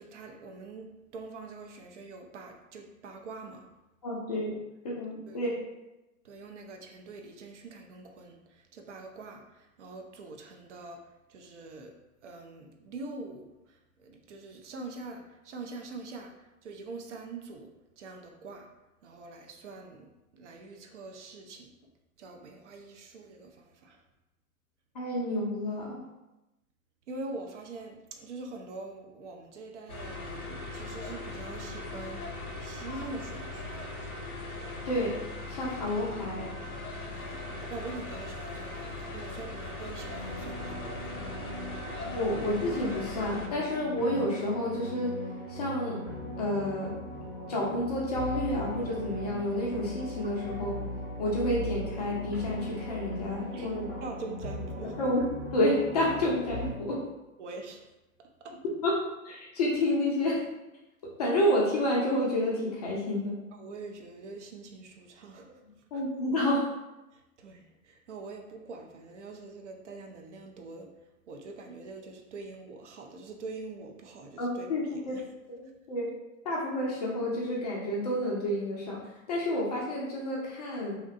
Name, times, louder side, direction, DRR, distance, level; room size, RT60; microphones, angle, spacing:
voice 1, 0.0-3.7 5.3-5.4 6.2-11.9 12.2-18.7 19.0-21.7 22.2-24.0 27.1-33.9 37.1-41.4 53.5-55.0 57.4-57.9 58.2-58.6 63.5-65.6 65.9-66.0 67.1-75.2, right 3 dB, 55° right, 3 dB, 0.5 m, -44 dB
voice 2, 4.0-4.5 4.8-5.5 24.9-26.0 34.9-35.2 35.5-36.5 42.1-45.1 45.5-46.0 46.4-46.9 47.5-50.8 51.2-54.0 55.0-55.2 55.5-57.0 58.8-59.0 59.2-60.4 61.2-63.3 65.9-66.7 74.4-75.2 75.5-76.1 76.4-79.0 79.3-81.0, left 1 dB, 30° left, -4 dB, 0.4 m, -29 dB
sound 1, 29.9-43.5, left 2 dB, 75° left, 0.7 m, -39 dB
sound 2, 40.0-56.7, equal, 25° right, 0.8 m, -39 dB
2.7 x 2.1 x 2.4 m, 0.98 s
figure-of-eight pair, 105°, 43 cm